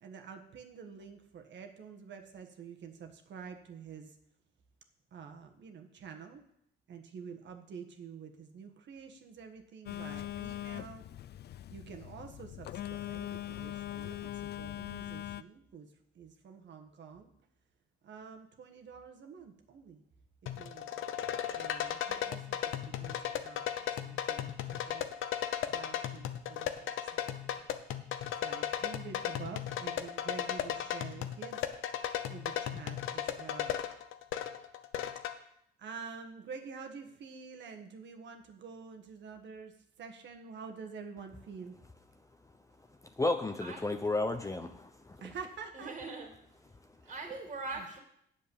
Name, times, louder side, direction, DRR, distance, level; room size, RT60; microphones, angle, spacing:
voice 1, 0.0-4.1 5.1-6.4 6.9-11.0 11.7-15.9 16.2-17.3 18.0-20.0 20.6-20.9 21.5-22.6 22.9-23.2 23.4-23.6 24.0-25.0 25.7-27.4 28.4-31.6 32.3-33.8 35.8-39.7 40.0-41.7 45.2-46.1, right 6 dB, 65° right, 4 dB, 1.5 m, -48 dB
Telephone, 9.9-15.4, left 13 dB, 55° left, 0.4 m, -41 dB
sound 1, 20.5-35.3, left 10 dB, 85° left, 0.8 m, -36 dB
voice 2, 43.2-45.3, left 2 dB, 15° left, 7 dB, 0.8 m, -33 dB
voice 3, 45.7-46.3 47.1-48.0, right 3 dB, 35° right, 2 dB, 2.2 m, -41 dB
8.6 x 7.4 x 7.1 m, 0.73 s
cardioid pair, 90°, 20 cm